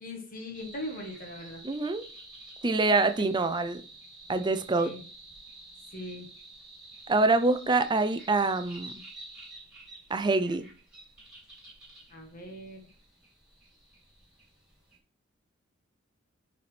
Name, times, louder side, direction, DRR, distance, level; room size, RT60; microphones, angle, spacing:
voice 1, 0.0-1.6 3.3-3.5 4.7-5.0 5.9-6.3 12.1-12.8, left 1 dB, 45° left, 1.4 m, -40 dB
sound 1, 0.5-15.0, right 2 dB, 5° right, 2.7 m, -50 dB
voice 2, 1.6-2.0 2.6-3.8 4.3-4.9 7.1-8.9 10.1-10.7, right 3 dB, 20° right, 0.5 m, -25 dB
9.2 x 4.3 x 3.3 m
head